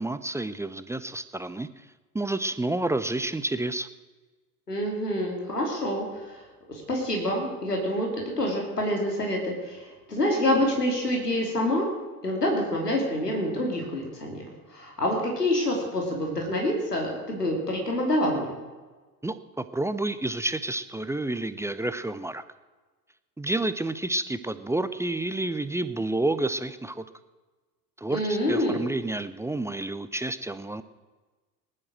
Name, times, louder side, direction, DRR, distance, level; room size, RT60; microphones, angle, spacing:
voice 1, 0.0-1.9 2.1-3.9 19.2-22.4 23.4-27.0 28.0-30.8, right 2 dB, 5° right, 12 dB, 0.7 m, -29 dB
voice 2, 4.7-6.4 6.7-8.1 8.4-11.9 12.2-14.4 14.7-18.5 28.1-28.8, left 1 dB, 85° left, 0 dB, 3.1 m, -27 dB
19.5 x 11.0 x 6.3 m, 1.3 s
figure-of-eight pair, 70°, 46 cm